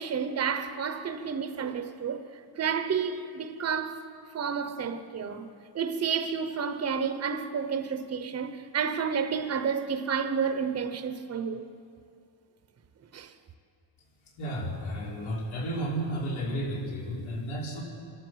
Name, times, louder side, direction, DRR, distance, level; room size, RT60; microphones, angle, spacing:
voice 1, 0.0-2.3 2.6-4.0 4.3-5.5 5.7-11.7 13.1-13.3, right 6 dB, 35° right, 0.9 m, -30 dB
voice 2, 14.4-17.8, right 1 dB, 85° left, 5.6 m, -32 dB
26.0 x 12.5 x 8.0 m
cardioid pair, 160°, 46 cm